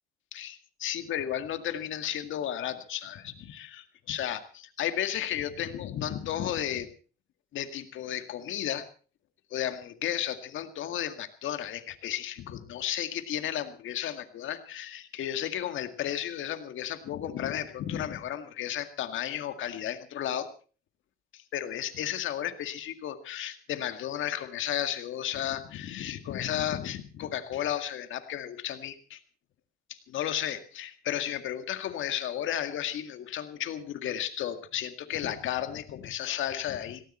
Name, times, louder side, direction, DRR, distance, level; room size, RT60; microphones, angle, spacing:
voice 1, 0.3-6.9 7.5-8.9 9.5-20.5 21.3-29.2 29.9-37.0, left 11 dB, 80° left, 9 dB, 2.0 m, -33 dB
18.0 x 18.0 x 4.3 m, 0.39 s
cardioid pair, 90°, 20 cm